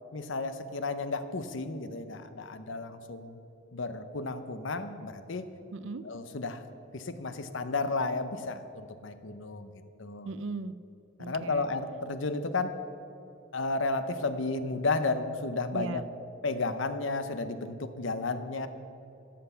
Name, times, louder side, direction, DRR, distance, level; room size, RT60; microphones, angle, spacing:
voice 1, 0.1-3.4 3.7-5.5 6.0-6.6 6.9-9.7 10.0-10.3 11.2-12.8 13.5-16.1 16.4-18.7, left 3 dB, 70° left, 10 dB, 0.8 m, -33 dB
voice 2, 5.7-6.1 10.3-10.7 11.2-11.7 15.7-16.0, right 3 dB, 70° right, 15 dB, 0.5 m, -37 dB
12.5 x 7.9 x 6.8 m, 2.8 s
head